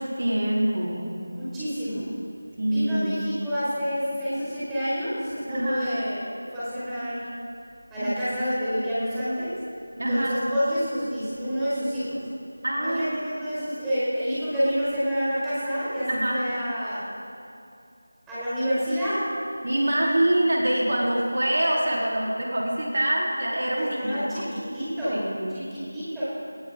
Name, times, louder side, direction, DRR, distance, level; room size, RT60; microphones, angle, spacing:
voice 1, 0.0-1.2 2.6-3.1 5.5-5.9 8.0-8.1 10.0-10.4 12.6-13.2 16.1-16.4 19.6-24.4 25.1-25.7, right 1 dB, 55° right, -4 dB, 3.8 m, -25 dB
voice 2, 1.3-2.1 2.7-7.3 7.9-9.6 10.1-12.2 12.8-17.0 18.3-19.3 23.7-25.2 25.5-26.2, equal, 5° right, -13 dB, 4.9 m, -28 dB
19.5 x 17.5 x 3.8 m, 2.6 s
figure-of-eight pair, 170°, 0 cm